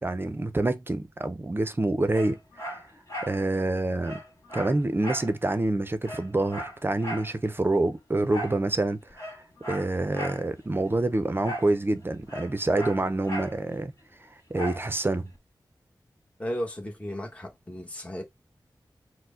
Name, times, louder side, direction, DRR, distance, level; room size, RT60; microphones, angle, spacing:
voice 1, 0.0-2.4 3.2-4.2 4.5-9.2 9.7-13.9 14.5-15.3, right 2 dB, 30° right, 0.6 m, -27 dB
Dog, 2.1-3.4 3.7-3.8 4.0-5.3 5.7-5.8 6.0-7.3 8.3-8.6 9.1-10.4 11.4-11.8 12.0-13.6 14.5-14.9 15.4-15.5, equal, 40° left, 2.2 m, -37 dB
voice 2, 16.4-18.2, equal, 15° left, 1.2 m, -34 dB
4.5 x 2.1 x 3.7 m
wide cardioid pair, 65°, 8 cm